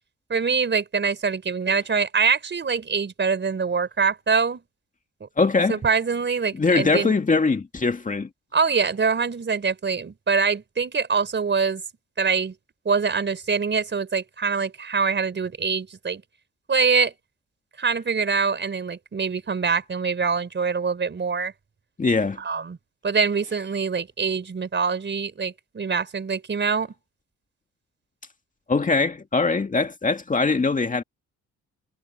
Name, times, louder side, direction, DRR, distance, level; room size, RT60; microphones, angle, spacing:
voice 1, 0.3-4.6 5.2-5.3 5.7-7.2 8.5-11.8 12.2-12.5 12.8-16.2 16.7-17.1 17.8-21.5 22.4-22.8 23.0-26.9, right 5 dB, 40° right, 4.6 m, -24 dB
voice 2, 5.4-5.8 6.5-8.3 22.0-22.4 28.7-31.0, left 4 dB, 25° left, 2.2 m, -22 dB
cardioid pair, 90°, 30 cm